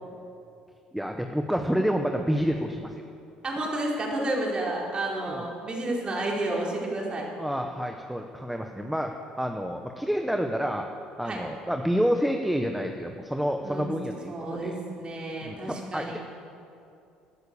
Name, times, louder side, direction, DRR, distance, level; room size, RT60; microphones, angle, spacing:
voice 1, 0.9-2.9 5.3-5.5 7.4-10.9 11.2-14.3 14.6-14.8 15.4-16.2, equal, 5° right, 4 dB, 1.1 m, -28 dB
voice 2, 3.4-7.3 11.2-11.4 13.6-13.9 14.3-16.2, right 1 dB, 35° right, -2 dB, 4.6 m, -31 dB
17.5 x 10.5 x 7.0 m, 2.6 s
supercardioid pair, 75°, 3 cm